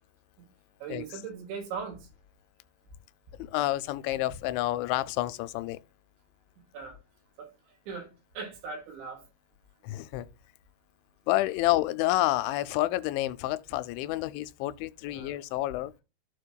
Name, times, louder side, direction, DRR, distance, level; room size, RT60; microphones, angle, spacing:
voice 1, 0.8-2.0 6.7-6.9 7.9-8.1 8.4-9.2 15.1-15.4, right 5 dB, 85° right, 4.6 m, -38 dB
voice 2, 3.4-5.8 9.8-10.3 11.3-15.9, left 17 dB, 90° left, 2.9 m, -29 dB
14.5 x 5.0 x 2.3 m
omnidirectional pair, 5.2 m